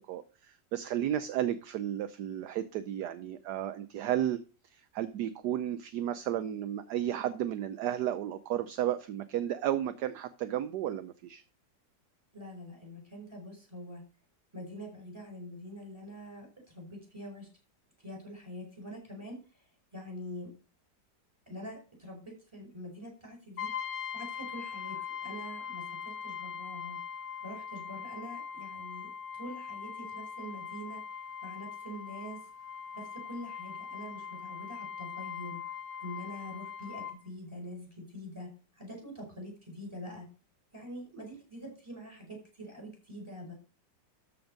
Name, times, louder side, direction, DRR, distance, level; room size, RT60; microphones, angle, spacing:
voice 1, 0.0-4.4 4.7-11.4, right 11 dB, 70° right, 11 dB, 1.2 m, -33 dB
voice 2, 12.3-14.0 14.5-17.5 18.0-20.5 21.5-23.7 24.1-27.0 27.4-29.1 29.3-32.4 32.9-35.6 36.0-38.5 38.7-40.3 40.7-43.5, equal, 15° right, 1 dB, 5.2 m, -45 dB
Brass instrument, 23.6-37.2, left 7 dB, 55° left, 1.9 m, -41 dB
13.0 x 5.3 x 5.1 m, 0.34 s
omnidirectional pair, 2.0 m